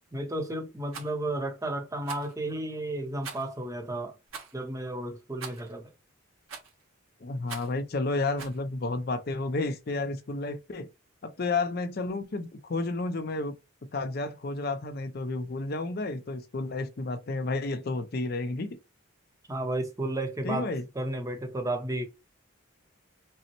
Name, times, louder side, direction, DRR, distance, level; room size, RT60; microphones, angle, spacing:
voice 1, 0.1-4.1 4.5-5.9 19.5-20.7 20.9-22.1, right 1 dB, 15° right, 0.7 m, -32 dB
Rattle, 0.9-1.1 2.0-2.3 3.2-3.6 4.3-4.5 5.4-5.7 6.5-6.8 7.5-7.8 8.4-8.6, right 6 dB, 85° right, 1.4 m, -42 dB
voice 2, 7.2-10.9 11.2-13.5 13.9-18.8 20.4-20.8, left 3 dB, 45° left, 0.5 m, -31 dB
5.4 x 2.0 x 2.9 m
head